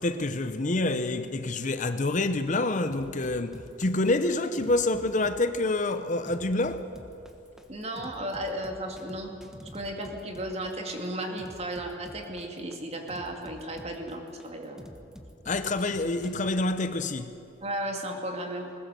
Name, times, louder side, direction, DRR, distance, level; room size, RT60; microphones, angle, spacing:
voice 1, 0.0-7.0 15.5-17.4, left 2 dB, 40° left, 0.7 m, -27 dB
sound 1, 2.9-16.5, equal, 5° right, 1.3 m, -47 dB
voice 2, 7.7-9.3 9.7-14.9 17.6-18.7, right 1 dB, 35° right, 2.4 m, -34 dB
21.0 x 20.5 x 6.8 m
head